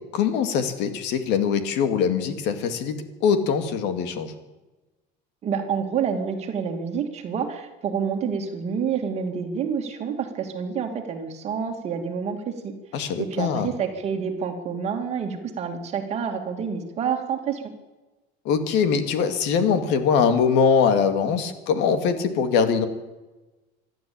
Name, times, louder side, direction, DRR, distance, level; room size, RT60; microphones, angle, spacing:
voice 1, 0.1-3.0 3.2-4.3 12.9-13.7 18.4-22.9, left 6 dB, 65° left, 8 dB, 2.4 m, -22 dB
voice 2, 5.4-12.7 13.2-17.6, right 6 dB, 35° right, 4 dB, 2.6 m, -28 dB
26.5 x 12.0 x 8.8 m, 1.1 s
cardioid pair, 170°, 20 cm